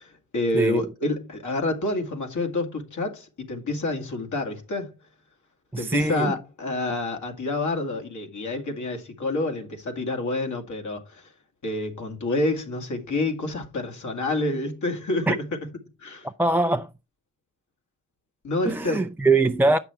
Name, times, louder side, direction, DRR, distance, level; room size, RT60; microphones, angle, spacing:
voice 1, 0.0-4.9 5.8-11.3 11.6-15.3 16.0-16.3 18.4-19.0, left 2 dB, 60° left, 2.2 m, -28 dB
voice 2, 0.5-0.9 5.7-6.4 15.3-15.4 16.2-16.9 18.7-19.8, right 2 dB, 5° right, 0.4 m, -22 dB
8.1 x 6.0 x 4.4 m
cardioid pair, 75°, 33 cm